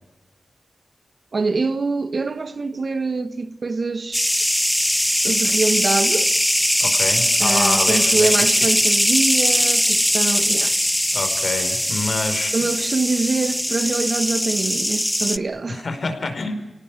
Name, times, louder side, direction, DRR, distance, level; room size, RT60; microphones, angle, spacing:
voice 1, 1.3-4.3 5.2-6.3 7.4-10.8 12.5-15.8, right 3 dB, 60° right, 1.6 m, -24 dB
sound 1, 4.1-15.4, equal, 5° left, 0.8 m, -20 dB
voice 2, 6.8-8.4 11.1-12.6 15.7-16.5, left 3 dB, 65° left, 5.1 m, -27 dB
26.0 x 18.5 x 9.3 m
cardioid pair, 55°, 0 cm